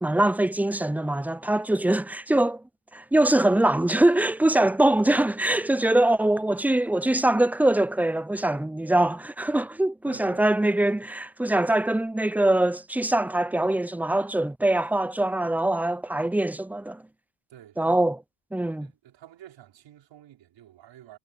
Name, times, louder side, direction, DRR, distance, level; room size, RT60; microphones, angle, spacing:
voice 1, 0.0-2.6 2.9-17.0 17.8-18.2 18.5-18.9, right 1 dB, 5° right, 0.4 m, -23 dB
voice 2, 10.0-10.5 17.5-18.1 18.8-21.2, right 12 dB, 75° right, 4.8 m, -49 dB
cardioid pair, 85°, 45 cm